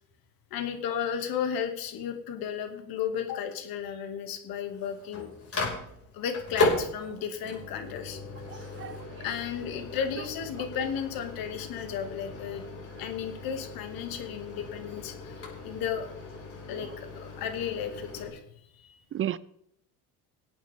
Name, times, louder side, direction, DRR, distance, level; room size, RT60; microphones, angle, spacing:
voice 1, 0.5-5.3 6.1-8.2 9.2-12.6 13.0-16.1 16.7-18.4 18.7-19.0, left 8 dB, 70° left, 2.1 m, -34 dB
Microwave oven, 4.6-18.3, left 2 dB, 40° left, 5.0 m, -36 dB
voice 2, 8.5-9.2 19.1-19.4, right 11 dB, 35° right, 0.5 m, -34 dB
18.5 x 8.7 x 3.5 m
supercardioid pair, 80°, 37 cm